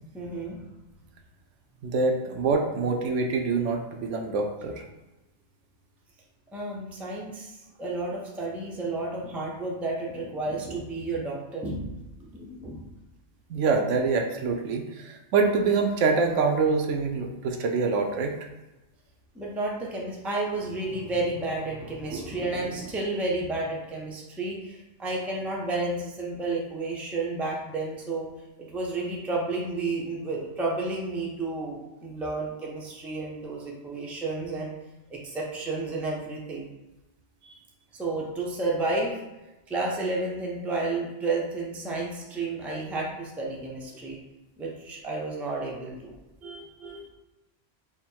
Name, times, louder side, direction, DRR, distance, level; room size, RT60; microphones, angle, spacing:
voice 1, 0.1-0.6 6.5-12.9 19.3-28.3 28.6-34.7 35.1-36.7 37.9-39.2 39.7-44.2 44.6-46.1 46.4-47.1, right 2 dB, ahead, -3 dB, 0.4 m, -31 dB
voice 2, 1.8-4.7 13.5-18.3, right 4 dB, 80° right, 4 dB, 0.9 m, -25 dB
3.5 x 2.1 x 4.4 m, 1.0 s
omnidirectional pair, 1.3 m